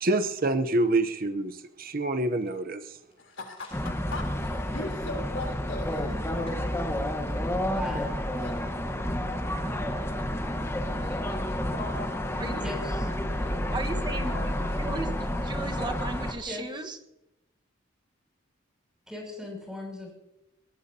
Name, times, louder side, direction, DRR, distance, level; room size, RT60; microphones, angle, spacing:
voice 1, 0.0-3.0, right 2 dB, 45° right, 9 dB, 0.8 m, -27 dB
sound 1, 2.0-4.7 5.0-5.1 6.5-6.7, left 1 dB, 30° left, 7.2 m, -51 dB
voice 2, 3.2-7.2 8.4-8.8 10.7-13.0 13.4-14.6, left 2 dB, 75° left, 3 dB, 3.6 m, -41 dB
sound 2, 3.7-16.3, left 1 dB, 15° left, 1.3 m, -30 dB
voice 3, 7.5-8.6 12.6-13.0 16.5-16.8 19.1-20.1, left 1 dB, 5° right, 0 dB, 6.9 m, -38 dB
voice 4, 13.7-14.3 14.8-17.0, right 2 dB, 25° right, 5 dB, 1.4 m, -35 dB
22.0 x 19.0 x 2.8 m, 0.88 s
head